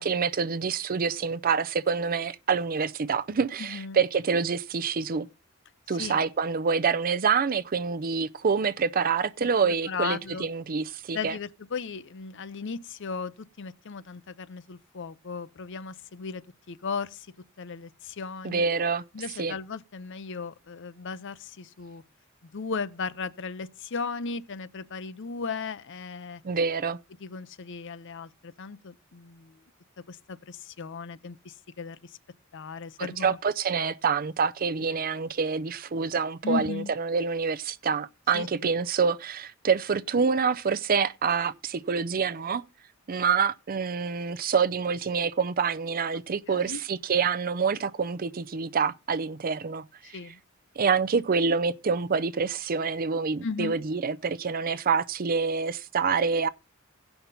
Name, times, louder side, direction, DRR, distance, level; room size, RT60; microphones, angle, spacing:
voice 1, 0.0-5.3 5.9-11.3 18.4-19.0 19.4-19.5 26.4-27.0 33.0-42.6 43.1-50.2 50.8-56.5, right 5 dB, 45° right, 0.5 m, -27 dB
voice 2, 3.6-4.0 5.9-6.2 9.4-10.5 11.1-13.3 13.6-16.4 16.7-17.3 17.6-18.6 19.1-22.0 22.5-26.4 27.2-29.6 30.1-32.2 32.5-33.4 36.4-36.9 38.3-38.7 46.5-46.8 50.0-50.4 53.4-53.8, left 4 dB, 60° left, 0.6 m, -36 dB
17.0 x 5.8 x 4.0 m
head